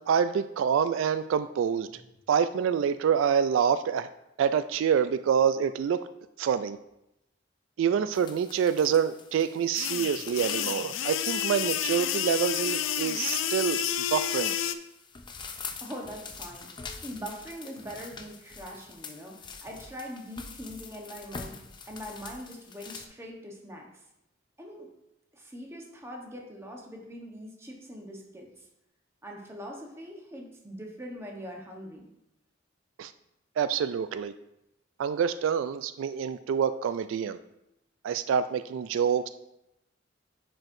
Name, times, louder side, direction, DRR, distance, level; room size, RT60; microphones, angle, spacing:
voice 1, 0.0-1.9 2.3-4.1 4.4-6.0 6.4-6.8 7.8-13.8 14.1-14.6 33.0-33.1 33.6-34.3 35.0-37.4 38.0-39.3, right 7 dB, 85° right, 13 dB, 0.3 m, -26 dB
sound 1, 8.1-23.1, left 5 dB, 25° left, 0.5 m, -46 dB
sound 2, 9.7-14.7, left 10 dB, 85° left, 0.4 m, -30 dB
voice 2, 15.8-16.7 17.0-21.6 21.9-23.9 24.6-24.9 25.3-28.6 29.2-32.1, equal, 15° right, 0 dB, 1.0 m, -42 dB
10.5 x 4.4 x 2.6 m, 0.85 s
head